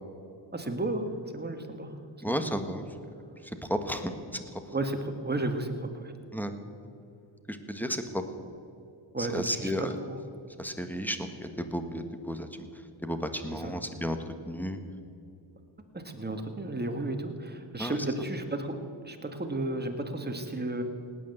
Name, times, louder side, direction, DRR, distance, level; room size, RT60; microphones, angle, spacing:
voice 1, 0.5-1.9 2.2-2.5 4.7-6.1 9.1-9.7 10.0-10.2 13.5-13.7 15.9-18.8 19.0-20.8, right 2 dB, 20° right, 5 dB, 1.9 m, -33 dB
voice 2, 2.2-2.8 3.6-4.1 6.3-6.5 7.5-8.2 9.2-10.0 10.6-12.5 13.0-14.8 17.8-18.0, equal, 5° left, 7 dB, 1.5 m, -33 dB
17.5 x 9.5 x 8.0 m, 2.5 s
cardioid pair, 65°, 50 cm